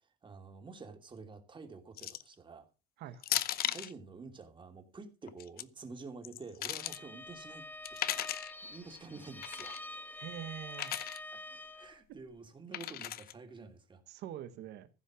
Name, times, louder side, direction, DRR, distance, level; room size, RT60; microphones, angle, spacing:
voice 1, 0.2-2.7 3.7-9.8 11.3-11.4 11.7-14.0 14.5-14.6, right 4 dB, 30° right, 2.8 m, -49 dB
sound 1, 2.0-2.3 3.2-3.9 5.3-5.6 6.2-7.0 7.8-8.5 9.4-9.8 10.7-11.2 12.7-13.3, left 12 dB, 65° left, 0.8 m, -36 dB
voice 2, 3.0-3.3 10.1-11.0 14.1-14.9, right 11 dB, 80° right, 1.3 m, -45 dB
Bowed string instrument, 6.7-12.0, left 2 dB, 10° left, 1.5 m, -47 dB
15.0 x 5.8 x 6.2 m
cardioid pair, 110°, 17 cm